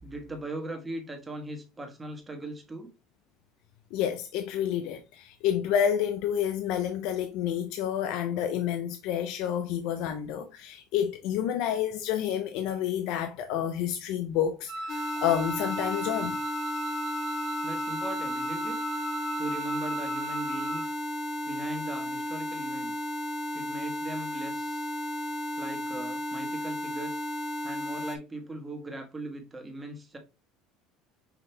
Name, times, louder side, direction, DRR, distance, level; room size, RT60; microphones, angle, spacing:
voice 1, 0.0-2.9 17.6-18.9 19.4-20.9 21.4-23.0 23.5-24.9 25.6-27.2 27.6-30.2, right 1 dB, 15° right, 1.2 m, -39 dB
voice 2, 3.9-16.4, left 9 dB, 70° left, 0.5 m, -29 dB
Wind instrument woodwind instrument, 14.7-20.9, right 1 dB, 65° right, 1.4 m, -36 dB
sound 1, 14.9-28.2, left 1 dB, 30° left, 0.7 m, -34 dB
5.8 x 2.7 x 3.2 m
cardioid pair, 135°, 0 cm